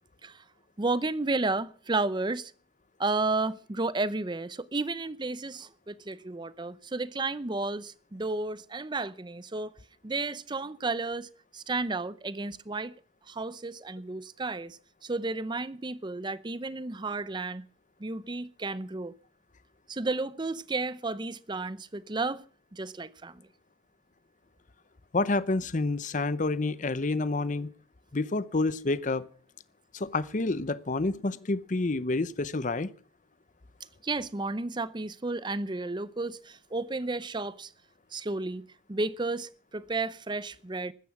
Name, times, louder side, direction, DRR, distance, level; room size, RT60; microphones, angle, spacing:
voice 1, 0.8-2.5 3.0-9.7 10.0-12.9 13.3-17.6 18.0-19.1 19.9-22.4 22.7-23.5 34.0-37.7 38.1-40.9, right 3 dB, 25° right, 0.6 m, -32 dB
voice 2, 25.1-27.7 28.1-29.3 29.9-32.9, left 2 dB, 45° left, 0.7 m, -28 dB
15.0 x 13.0 x 6.1 m
head